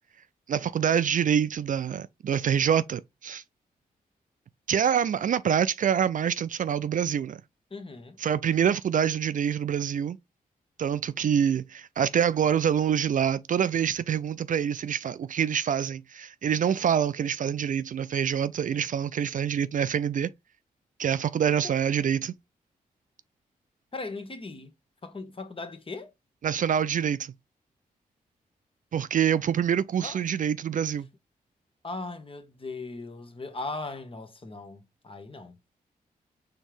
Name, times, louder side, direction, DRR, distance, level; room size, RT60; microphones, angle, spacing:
voice 1, 0.5-3.4 4.7-7.4 8.2-10.2 10.8-20.3 21.0-22.3 26.4-27.3 28.9-31.1, right 8 dB, 55° right, 0.4 m, -26 dB
voice 2, 7.7-8.2 23.9-24.7 25.0-26.1 30.0-30.2 31.8-35.6, left 3 dB, 35° left, 1.1 m, -38 dB
4.3 x 3.6 x 3.4 m
cardioid pair, 55°, 16 cm